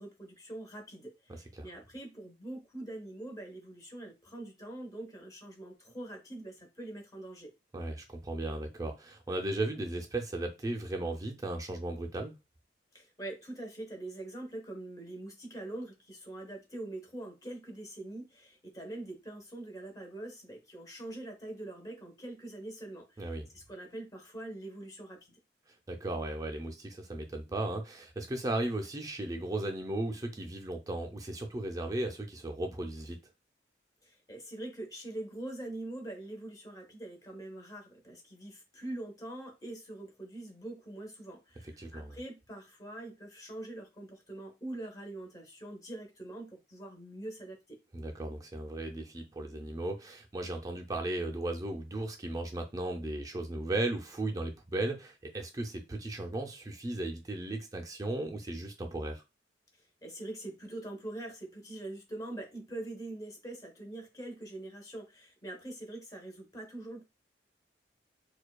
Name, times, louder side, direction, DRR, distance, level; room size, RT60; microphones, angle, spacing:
voice 1, 0.0-7.5 12.9-25.4 34.0-47.8 60.0-67.0, right 1 dB, 20° left, 0.9 m, -43 dB
voice 2, 7.7-12.3 23.2-23.5 25.9-33.2 41.8-42.2 47.9-59.2, right 2 dB, 20° right, 0.4 m, -36 dB
4.4 x 2.2 x 2.2 m
head